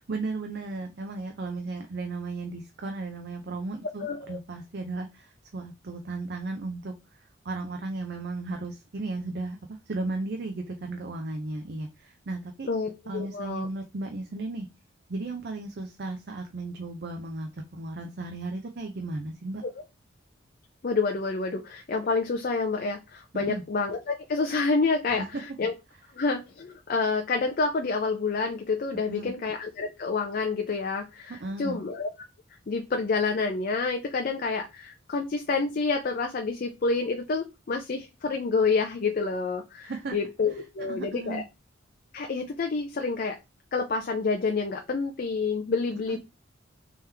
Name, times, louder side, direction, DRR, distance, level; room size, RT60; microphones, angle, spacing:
voice 1, 0.1-12.7 13.1-14.7 15.1-19.6 23.3-23.6 25.1-25.3 29.1-29.3 31.4-31.8 39.8-40.2 40.8-41.4 46.1-46.2, right 2 dB, 55° right, 4 dB, 0.5 m, -35 dB
voice 2, 4.0-4.4 12.7-13.7 19.6-19.7 20.8-25.2 25.6-25.7 26.2-32.1 32.7-41.4 42.1-43.4 43.7-46.2, left 4 dB, 50° left, 3 dB, 0.4 m, -28 dB
3.6 x 3.0 x 3.3 m, 0.25 s
head